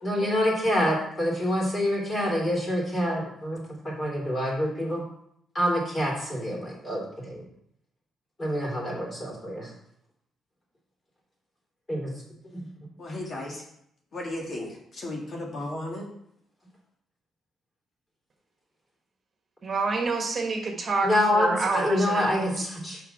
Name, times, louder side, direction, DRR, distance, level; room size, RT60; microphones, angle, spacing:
voice 1, 0.0-5.0 5.5-7.4 8.4-9.7 11.9-12.1 21.0-23.0, left 1 dB, 25° left, -2 dB, 3.3 m, -26 dB
voice 2, 13.0-13.6 14.1-14.7 14.9-16.0, left 1 dB, 45° left, -1 dB, 1.9 m, -34 dB
voice 3, 19.6-22.6, right 4 dB, 40° right, 3 dB, 1.3 m, -28 dB
6.0 x 5.2 x 5.6 m, 0.73 s
cardioid pair, 90°, 0 cm